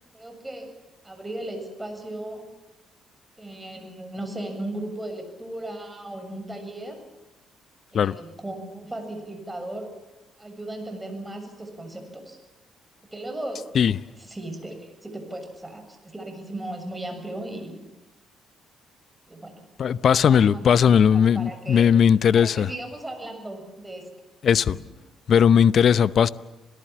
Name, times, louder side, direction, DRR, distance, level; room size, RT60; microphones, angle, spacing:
voice 1, 0.1-0.7 1.0-2.5 3.4-7.0 7.9-9.9 10.4-12.4 13.1-13.6 14.2-17.8 19.3-19.6 20.1-21.9 22.3-24.1, right 1 dB, 15° right, 7.1 m, -36 dB
voice 2, 19.8-22.7 24.4-24.7 25.3-26.3, left 8 dB, 55° left, 0.7 m, -18 dB
27.5 x 18.0 x 7.4 m
hypercardioid pair, 45°, 0 cm